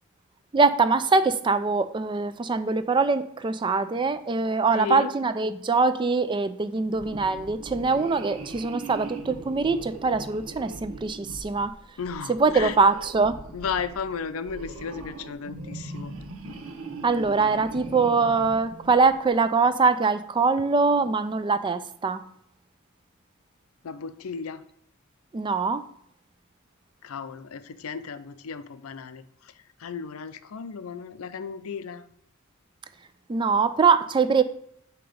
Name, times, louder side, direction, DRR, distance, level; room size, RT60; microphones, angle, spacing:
voice 1, 0.5-11.7 12.3-13.4 17.0-22.2 25.3-25.8 33.3-34.4, right 4 dB, 25° right, 12 dB, 0.3 m, -23 dB
voice 2, 4.7-5.1 12.0-12.8 13.5-16.1 23.8-24.6 27.0-29.2 29.8-32.0, left 6 dB, 85° left, 12 dB, 0.5 m, -34 dB
sound 1, 6.9-19.4, right 3 dB, 85° right, 0.8 m, -40 dB
7.5 x 2.9 x 5.0 m, 0.72 s
head